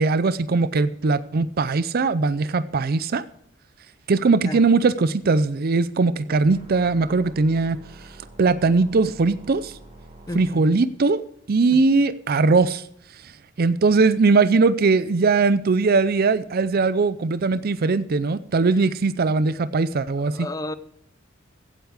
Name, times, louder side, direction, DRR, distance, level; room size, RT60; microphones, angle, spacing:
voice 1, 0.0-3.2 4.1-7.8 8.4-9.7 10.3-11.2 11.5-12.8 13.6-20.5, right 4 dB, 50° right, 15 dB, 0.5 m, -20 dB
sound 1, 6.4-10.5, right 1 dB, 30° right, 2.2 m, -46 dB
voice 2, 10.3-10.7 20.3-20.7, left 1 dB, 20° left, 14 dB, 0.7 m, -31 dB
16.0 x 8.2 x 4.8 m, 0.70 s
head